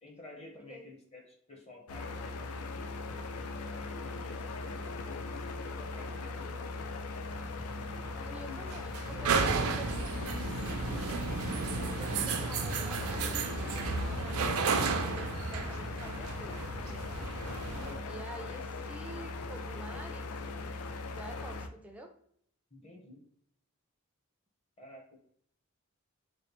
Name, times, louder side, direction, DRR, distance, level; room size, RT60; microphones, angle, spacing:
voice 1, 0.0-3.0 3.5-6.7 7.7-8.6 9.1-9.6 17.8-18.2 22.7-23.2 24.8-25.2, left 2 dB, 30° left, 1 dB, 0.8 m, -51 dB
sound 1, 1.9-21.7, left 3 dB, 85° left, 0.4 m, -40 dB
sound 2, 7.3-17.9, right 4 dB, 80° right, 0.4 m, -33 dB
voice 2, 8.1-8.9 9.2-9.9 11.9-17.1 18.1-20.4 21.1-22.1, right 1 dB, 5° right, 3 dB, 0.3 m, -48 dB
3.1 x 3.1 x 2.9 m, 0.66 s
head